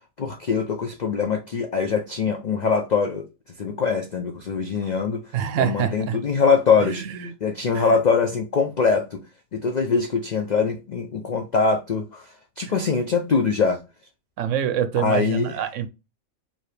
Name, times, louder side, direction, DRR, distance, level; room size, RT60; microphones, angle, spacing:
voice 1, 0.2-3.3 3.6-5.2 5.6-7.0 7.4-9.2 9.5-13.8 15.0-15.6, left 5 dB, 80° left, 0.4 m, -23 dB
voice 2, 5.3-6.2 6.8-7.3 7.7-8.0 14.4-15.9, right 9 dB, 70° right, 0.9 m, -26 dB
4.7 x 2.8 x 3.3 m
omnidirectional pair, 1.4 m